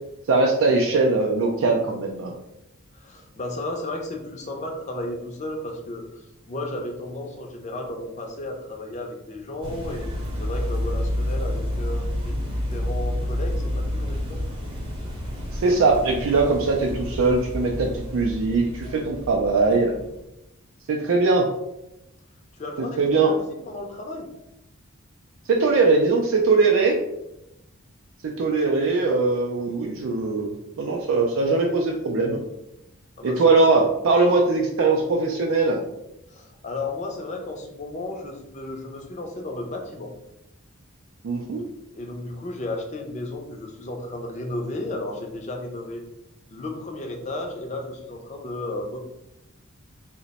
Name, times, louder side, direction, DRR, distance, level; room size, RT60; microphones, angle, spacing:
voice 1, 0.3-2.3 15.5-19.9 20.9-21.5 23.0-23.3 25.5-27.0 28.2-30.5 30.8-32.4 33.2-35.8 41.2-41.6, right 3 dB, 70° right, 0 dB, 0.4 m, -21 dB
voice 2, 2.9-10.1 10.4-12.4 12.7-14.4 22.5-24.3 33.2-33.6 36.3-40.1 41.9-46.0 46.5-49.0, left 1 dB, 30° left, 2 dB, 0.5 m, -34 dB
sound 1, 9.6-20.2, left 1 dB, 25° right, 0.7 m, -29 dB
2.9 x 2.1 x 4.0 m, 0.88 s
head